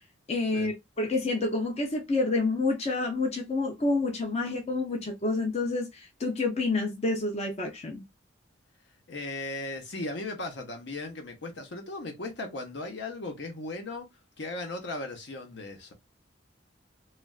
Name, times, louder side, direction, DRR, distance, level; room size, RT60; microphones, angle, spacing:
voice 1, 0.3-8.0, left 3 dB, 35° left, 0.6 m, -28 dB
voice 2, 9.1-14.1 14.4-15.9, left 2 dB, 65° left, 0.8 m, -37 dB
3.1 x 2.4 x 2.3 m
head